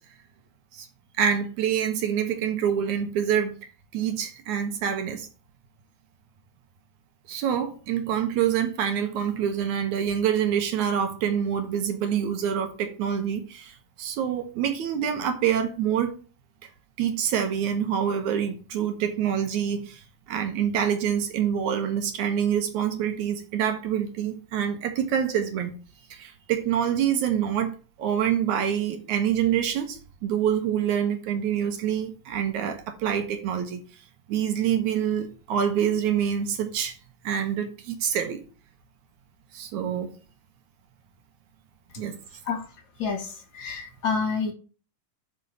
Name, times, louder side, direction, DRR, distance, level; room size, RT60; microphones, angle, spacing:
voice 1, 1.2-3.6 3.9-5.3 7.3-16.1 17.0-20.0 20.3-25.8 26.1-33.8 34.3-37.0 37.2-38.4 39.5-40.1 42.0-42.2, right 9 dB, 70° right, 2.2 m, -26 dB
voice 2, 43.0-44.5, left 5 dB, 40° left, 2.1 m, -28 dB
6.2 x 5.6 x 6.6 m
omnidirectional pair, 4.0 m